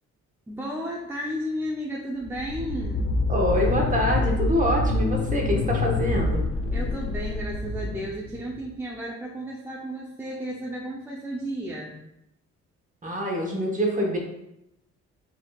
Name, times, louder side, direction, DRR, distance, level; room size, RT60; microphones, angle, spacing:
voice 1, 0.5-3.2 6.7-12.0, equal, 10° right, -3 dB, 0.6 m, -33 dB
sound 1, 2.2-8.7, left 2 dB, 45° left, 0.5 m, -26 dB
voice 2, 3.3-6.4 13.0-14.2, equal, 25° right, 0 dB, 1.1 m, -25 dB
4.3 x 3.8 x 2.3 m, 0.84 s
cardioid pair, 90°, 30 cm